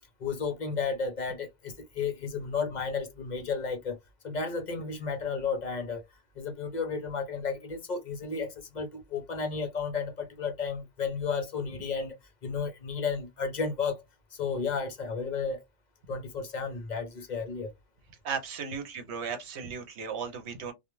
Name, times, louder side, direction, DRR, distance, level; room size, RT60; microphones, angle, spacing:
voice 1, 0.2-4.0 4.2-6.0 6.4-12.1 12.4-14.0 14.4-15.6 16.1-17.7, left 5 dB, 50° left, 0.7 m, -33 dB
voice 2, 18.2-20.7, right 6 dB, 75° right, 0.9 m, -36 dB
2.3 x 2.3 x 2.9 m
omnidirectional pair, 1.2 m